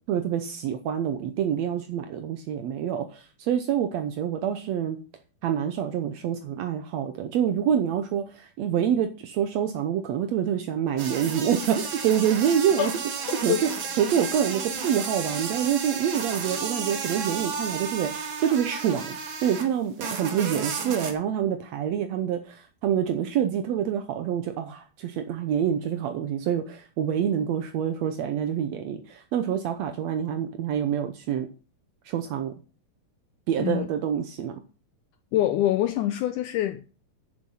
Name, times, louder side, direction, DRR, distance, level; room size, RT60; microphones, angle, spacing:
voice 1, 0.1-5.0 5.4-12.9 13.4-13.7 14.0-19.2 19.4-31.5 32.1-32.5 33.5-34.5, right 9 dB, 90° right, 1.5 m, -26 dB
sound 1, 11.0-19.7 20.0-21.1, right 5 dB, 55° right, 1.4 m, -32 dB
voice 2, 13.3-13.7 33.6-33.9 35.3-36.9, left 13 dB, 90° left, 1.8 m, -25 dB
9.5 x 7.2 x 5.5 m
omnidirectional pair, 4.3 m